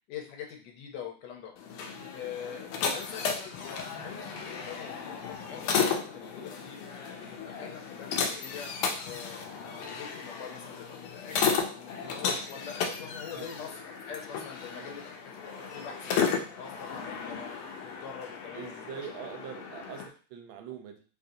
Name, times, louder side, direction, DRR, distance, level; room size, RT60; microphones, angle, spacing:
voice 1, 0.1-1.5 2.1-6.8 7.3-8.7 9.0-19.1, left 7 dB, 65° left, 1 dB, 1.2 m, -44 dB
sound 1, 1.6-20.1, left 6 dB, 85° left, 1.5 m, -34 dB
voice 2, 14.7-15.0 18.5-21.0, right 8 dB, 75° right, 5 dB, 1.3 m, -43 dB
3.8 x 2.5 x 2.7 m, 0.38 s
omnidirectional pair, 2.4 m